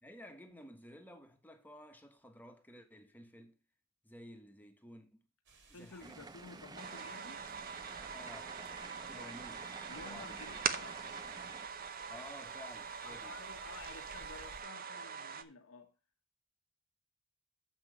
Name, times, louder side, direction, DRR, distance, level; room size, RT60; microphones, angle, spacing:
voice 1, 0.0-3.6 4.0-5.2 5.7-6.3 8.1-8.6 9.0-9.7 10.0-10.5 12.1-13.4, left 1 dB, 10° left, 1.2 m, -54 dB
sound 1, 5.5-14.6, right 1 dB, 60° right, 2.2 m, -62 dB
voice 2, 5.7-7.4 9.1-9.4 9.9-11.1 13.0-15.9, left 3 dB, 80° left, 1.1 m, -52 dB
sound 2, 6.0-11.7, right 4 dB, 20° right, 0.4 m, -51 dB
sound 3, 6.8-15.4, right 6 dB, 45° right, 0.7 m, -43 dB
7.4 x 5.7 x 5.3 m
head